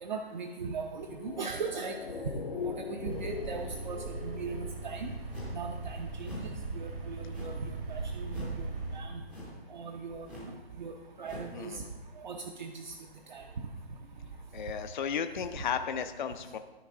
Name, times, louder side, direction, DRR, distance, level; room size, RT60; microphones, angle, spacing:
voice 1, 0.0-1.9 2.5-5.1 5.5-8.7 8.9-9.2 9.7-10.9 11.2-11.8 12.2-12.9 13.3-13.4, right 5 dB, 45° right, 3 dB, 0.7 m, -39 dB
sound 1, 0.9-5.5 5.8-5.9, left 7 dB, 65° left, 0.9 m, -41 dB
sound 2, 3.1-9.0, right 3 dB, 65° right, 1.7 m, -39 dB
sound 3, 5.3-5.7 6.2-6.6 7.3-7.7 8.3-8.6 9.3-9.6 10.2-10.6 11.2-11.6, left 1 dB, 5° right, 0.6 m, -44 dB
voice 2, 11.5-11.9 14.5-16.6, left 7 dB, 50° left, 8 dB, 0.5 m, -34 dB
13.0 x 4.5 x 3.7 m, 1.1 s
hypercardioid pair, 155°, 31 cm